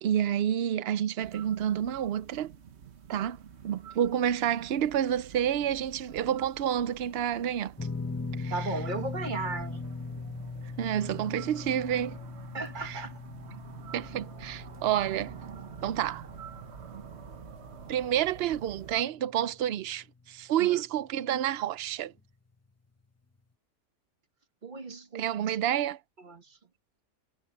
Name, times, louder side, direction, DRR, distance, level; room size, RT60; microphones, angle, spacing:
voice 1, 0.0-2.5 3.1-7.7 8.4-8.7 10.8-12.2 12.8-13.0 13.9-15.3 15.8-16.3 17.9-22.1 25.1-26.0, right 10 dB, 85° right, 0.5 m, -29 dB
sound 1, 1.2-19.0, right 7 dB, 45° right, 1.2 m, -48 dB
sound 2, 7.8-20.0 20.3-20.5 22.2-22.3, left 4 dB, 15° left, 0.5 m, -40 dB
voice 2, 8.5-9.8 12.5-13.1 20.6-20.8 24.6-25.3 26.2-26.6, right 3 dB, 30° right, 1.5 m, -36 dB
omnidirectional pair, 1.7 m